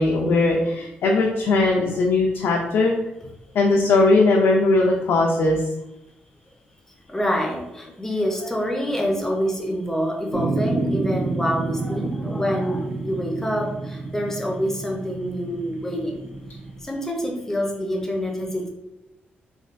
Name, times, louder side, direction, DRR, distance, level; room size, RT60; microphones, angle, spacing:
voice 1, 0.0-2.9 3.5-5.6 10.3-10.4 11.8-11.9 15.8-16.1, left 2 dB, 80° left, -1 dB, 0.4 m, -19 dB
voice 2, 7.1-16.3 16.8-18.7, equal, 10° left, 1 dB, 0.6 m, -26 dB
sound 1, 10.3-16.8, right 3 dB, 65° right, 0.6 m, -29 dB
3.2 x 2.2 x 2.5 m, 0.94 s
cardioid pair, 115°, 4 cm